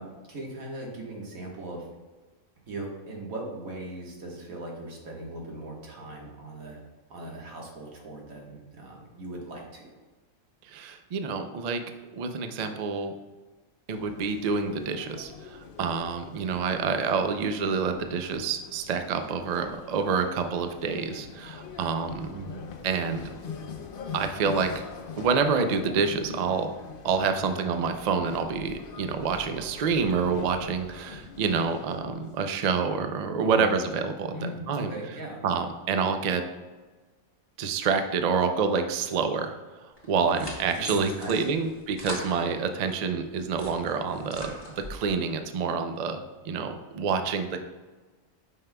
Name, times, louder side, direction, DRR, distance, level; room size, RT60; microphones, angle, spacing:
voice 1, 0.0-1.9 2.7-6.8 7.1-9.9 22.3-22.8 33.4-33.7 34.3-35.4 40.7-41.6, right 1 dB, 90° right, -1 dB, 1.8 m, -39 dB
voice 2, 10.7-11.8 12.2-13.1 13.9-22.3 22.8-23.2 24.1-24.8 25.2-26.7 27.0-34.9 35.4-36.4 37.6-39.5 40.1-46.2 46.4-47.6, right 5 dB, 70° right, 7 dB, 0.4 m, -27 dB
sound 1, 13.9-32.4, left 5 dB, 50° left, 0.7 m, -43 dB
sound 2, 40.0-43.0 43.4-45.1, left 1 dB, 20° left, 1.3 m, -41 dB
9.2 x 5.5 x 2.2 m, 1.3 s
omnidirectional pair, 1.4 m